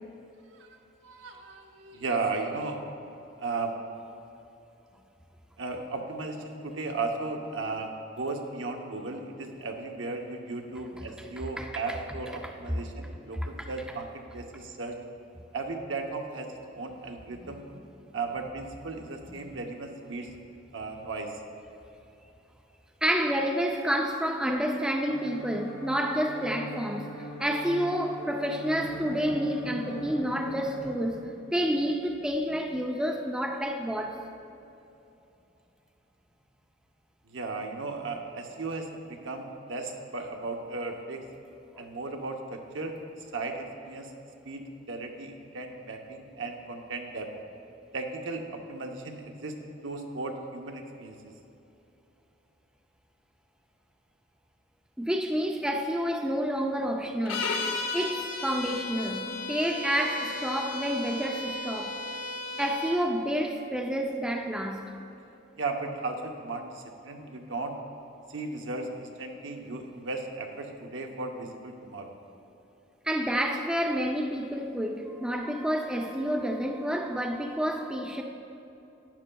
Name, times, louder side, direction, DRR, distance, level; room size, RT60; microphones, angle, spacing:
voice 1, 1.0-2.8 3.4-3.8 5.6-14.1 14.3-15.0 15.5-17.6 18.1-20.3 20.7-21.3 37.2-41.2 41.8-43.0 43.3-44.1 44.4-47.3 47.9-49.6 49.8-51.2 65.6-67.8 68.3-72.1, right 3 dB, 70° right, 3 dB, 0.8 m, -36 dB
voice 2, 23.0-27.1 27.4-34.2 55.0-57.5 57.9-61.9 62.6-64.9 73.0-78.2, equal, 5° right, 2 dB, 0.4 m, -29 dB
sound 1, 25.1-30.8, equal, 60° left, 1.3 m, -41 dB
sound 2, 57.3-63.0, left 2 dB, 85° left, 0.8 m, -34 dB
11.5 x 9.8 x 2.3 m, 2.9 s
head